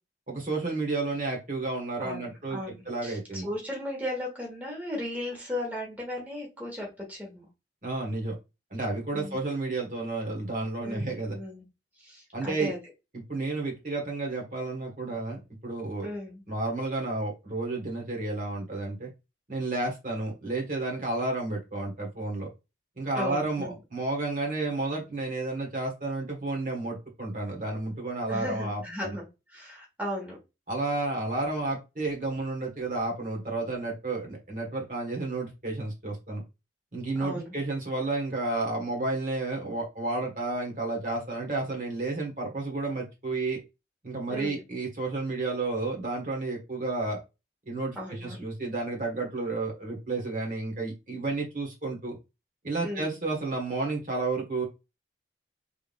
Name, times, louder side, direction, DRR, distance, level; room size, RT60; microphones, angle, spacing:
voice 1, 0.3-2.6 2.8-3.5 7.8-8.3 8.7-11.4 12.3-12.7 13.3-16.1 16.5-19.1 19.5-22.5 23.0-29.2 30.7-36.4 36.9-43.6 44.0-47.2 47.7-52.2 52.6-54.7, right 2 dB, 45° right, 0 dB, 1.6 m, -31 dB
voice 2, 2.0-7.5 9.1-9.4 10.8-11.6 12.0-12.8 16.0-16.4 23.1-23.7 28.3-30.4 37.1-37.5 44.3-44.6 47.9-48.4 52.8-53.1, left 1 dB, 10° right, -3 dB, 1.4 m, -36 dB
3.5 x 3.5 x 2.5 m, 0.25 s
head